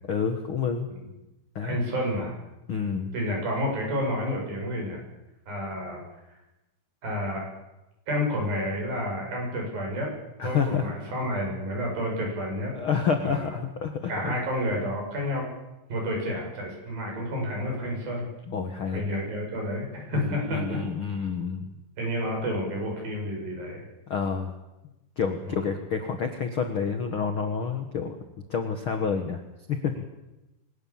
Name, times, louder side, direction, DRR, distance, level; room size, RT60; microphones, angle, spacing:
voice 1, 0.1-0.9 1.5-1.8 2.7-3.1 10.4-10.9 12.7-14.3 14.7-14.8 18.5-19.0 20.1-21.7 24.1-24.5 25.2-28.2 28.5-29.4 29.7-30.0, left 6 dB, 55° left, 7 dB, 1.5 m, -28 dB
voice 2, 1.6-2.3 3.1-5.0 5.5-6.0 7.0-7.5 8.1-10.1 10.4-12.7 13.2-13.5 14.1-15.5 15.9-18.3 18.9-20.8 22.0-23.8 25.5-25.7, equal, 65° right, 0 dB, 9.2 m, -30 dB
23.5 x 20.0 x 7.4 m, 0.97 s
omnidirectional pair, 4.5 m